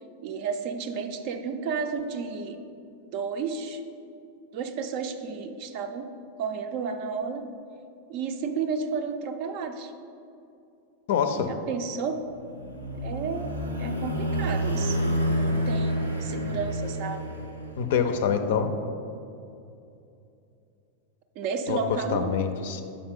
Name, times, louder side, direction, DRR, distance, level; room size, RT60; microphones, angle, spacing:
voice 1, 0.2-2.6 3.1-3.8 4.5-6.1 6.4-7.4 8.1-9.9 11.4-12.2 13.0-13.5 13.8-15.0 15.2-17.3 21.4-22.4, right 5 dB, 45° right, 7 dB, 0.5 m, -32 dB
voice 2, 11.1-11.5 17.8-18.7 21.7-21.8 22.1-22.8, left 7 dB, 55° left, 8 dB, 0.4 m, -25 dB
sound 1, 12.3-18.0, equal, 85° right, 0.7 m, -29 dB
7.0 x 5.0 x 3.6 m, 2.7 s
figure-of-eight pair, 90°, 0 cm